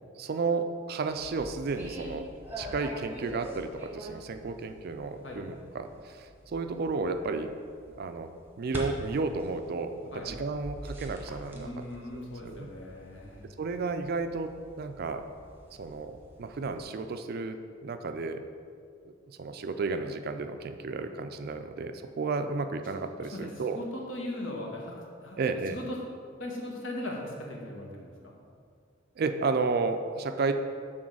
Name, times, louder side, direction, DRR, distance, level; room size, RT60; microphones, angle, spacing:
voice 1, 0.2-2.3 2.6-7.5 7.9-8.3 8.6-11.7 12.1-12.7 13.6-14.5 14.8-15.2 15.8-18.5 19.3-23.8 25.4-25.8 29.2-30.5, right 4 dB, 50° right, 8 dB, 0.4 m, -32 dB
sound 1, 1.1-16.9, right 1 dB, 10° right, 1.0 m, -45 dB
voice 2, 11.5-13.4 23.2-25.4 25.7-26.0 26.4-28.3, left 1 dB, 70° left, -1 dB, 1.3 m, -39 dB
6.3 x 3.8 x 6.2 m, 2.2 s
head